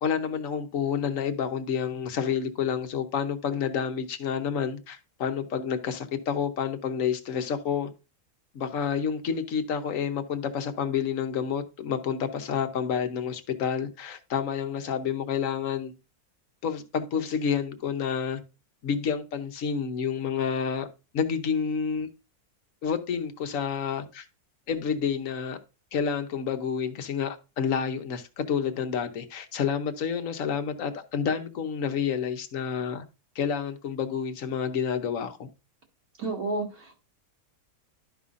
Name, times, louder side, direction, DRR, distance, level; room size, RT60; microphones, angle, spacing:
voice 1, 0.0-7.9 8.5-15.9 16.6-18.4 18.8-20.9 21.1-22.1 22.8-24.3 24.7-25.6 25.9-33.0 33.3-35.5, left 7 dB, 60° left, 1.1 m, -29 dB
voice 2, 36.2-37.0, right 3 dB, 70° right, 2.2 m, -31 dB
11.5 x 5.4 x 2.5 m
omnidirectional pair, 1.6 m